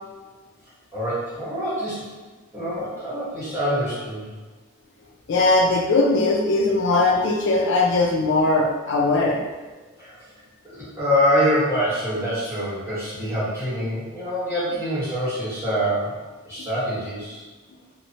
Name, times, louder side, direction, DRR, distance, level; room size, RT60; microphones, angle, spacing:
voice 1, 0.9-2.1 2.5-4.3 10.0-10.1 10.6-16.1 16.4-17.4, equal, 15° right, -11 dB, 1.1 m, -25 dB
voice 2, 5.3-9.4 16.6-16.7, left 2 dB, 60° left, -1 dB, 0.4 m, -20 dB
3.0 x 2.0 x 2.6 m, 1.3 s
head